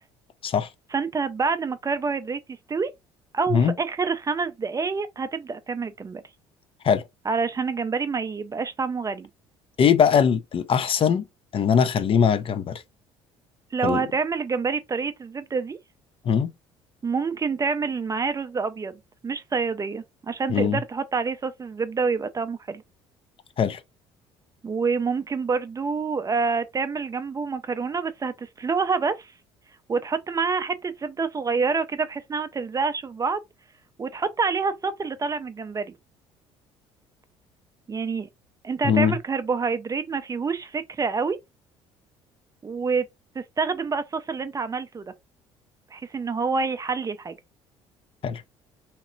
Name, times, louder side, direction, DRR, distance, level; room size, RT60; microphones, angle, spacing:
voice 1, 0.9-2.4 2.7-2.9 3.3-6.2 7.3-9.3 13.7-15.8 17.0-18.9 19.2-22.8 24.6-29.3 29.9-33.4 34.0-35.9 37.9-38.3 38.6-41.4 42.6-43.1 43.4-45.0 45.9-47.3, right 5 dB, 25° right, 0.4 m, -27 dB
voice 2, 9.8-11.2 11.5-12.8 13.8-14.0 16.3-16.5 20.5-20.8 23.6-23.8 38.8-39.2 48.2-48.4, left 7 dB, 40° left, 0.4 m, -21 dB
2.9 x 2.9 x 2.5 m
hypercardioid pair, 65°, 14 cm